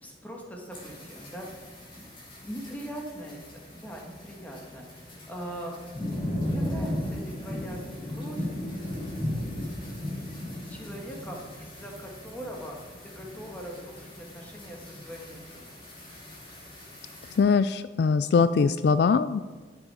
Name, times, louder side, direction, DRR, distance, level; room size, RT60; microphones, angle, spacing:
voice 1, 0.0-1.7 2.4-5.8 6.4-8.5 10.7-12.8 13.2-15.7, equal, 10° left, -1 dB, 1.8 m, -41 dB
sound 1, 0.7-17.4, left 1 dB, 30° left, 2.9 m, -37 dB
voice 2, 17.4-19.4, left 5 dB, 60° left, 13 dB, 0.3 m, -22 dB
11.5 x 7.4 x 4.9 m, 1.3 s
head